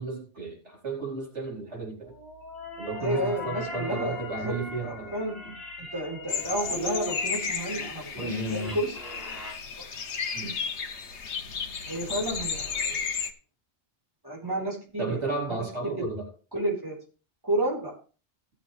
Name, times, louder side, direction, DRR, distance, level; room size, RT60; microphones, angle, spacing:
voice 1, 0.0-2.1 2.8-5.1 5.4-5.5 10.3-10.6 15.0-16.3, right 3 dB, 80° right, -1 dB, 4.5 m, -33 dB
sound 1, 2.1-9.5, left 2 dB, 35° left, 5.6 m, -38 dB
voice 2, 3.0-4.2 4.4-4.6 4.8-5.3 5.8-9.0 9.8-10.0 11.8-13.1 14.2-15.2 15.5-15.7 16.0-16.1 16.5-16.9 17.4-17.9, right 1 dB, 20° right, -4 dB, 4.4 m, -31 dB
sound 2, 6.3-13.3, left 5 dB, 80° left, 1.3 m, -33 dB
16.0 x 7.0 x 3.4 m, 0.36 s
omnidirectional pair, 1.2 m